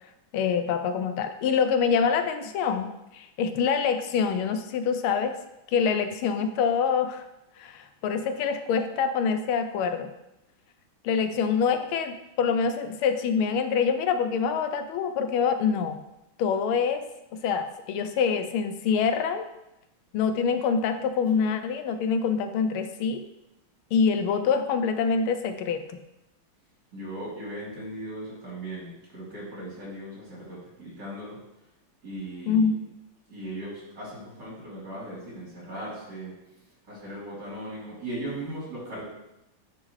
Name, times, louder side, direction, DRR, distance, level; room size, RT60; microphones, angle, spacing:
voice 1, 0.3-5.4 5.7-7.3 7.6-10.1 11.0-16.0 16.4-17.0 17.3-19.5 20.1-23.2 23.9-26.0 32.5-32.8, left 6 dB, 85° left, 9 dB, 1.5 m, -25 dB
voice 2, 26.9-31.4 32.0-32.7 33.3-36.3 36.9-39.0, right 1 dB, 55° right, -7 dB, 3.7 m, -38 dB
10.0 x 4.7 x 3.2 m, 0.90 s
omnidirectional pair, 2.3 m